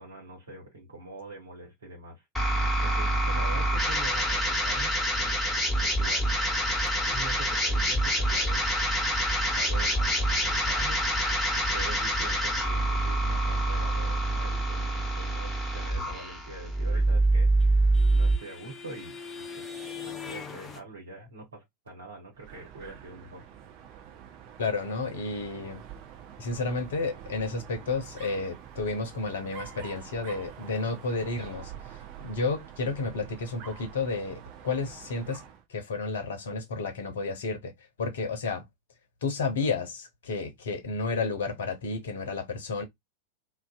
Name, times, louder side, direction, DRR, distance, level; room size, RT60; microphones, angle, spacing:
voice 1, 0.0-2.2 2.5-4.9 5.2-5.3 5.8-6.3 7.0-8.7 9.5-11.0 11.7-17.5 18.1-19.2 19.5-19.8 20.0-23.4, right 3 dB, 70° right, 1.0 m, -44 dB
sound 1, 2.3-18.4, right 1 dB, 5° left, 1.2 m, -26 dB
sound 2, 16.9-20.8, left 5 dB, 20° left, 0.5 m, -41 dB
Dog, 22.3-35.6, right 9 dB, 40° right, 0.7 m, -46 dB
voice 2, 24.6-25.8 26.4-35.4 35.7-37.7 38.0-38.7 39.2-42.8, left 3 dB, 60° left, 0.7 m, -31 dB
2.5 x 2.1 x 2.4 m
figure-of-eight pair, 90°, 0 cm